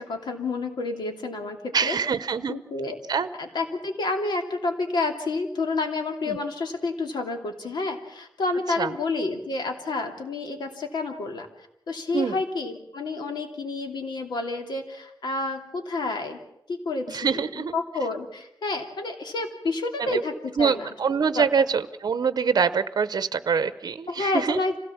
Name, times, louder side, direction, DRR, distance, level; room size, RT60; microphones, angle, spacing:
voice 1, 0.0-2.0 2.5-3.0 3.4-11.5 11.9-16.4 16.7-20.9 21.3-21.5 24.1-24.8, left 3 dB, 85° left, 4 dB, 2.8 m, -29 dB
voice 2, 1.7-2.6 3.1-3.3 6.3-6.4 8.8-8.9 12.1-12.4 17.1-17.7 20.0-20.2 20.6-24.6, right 6 dB, 65° right, 13 dB, 0.8 m, -24 dB
26.0 x 17.0 x 7.2 m, 0.82 s
wide cardioid pair, 125°, 7 cm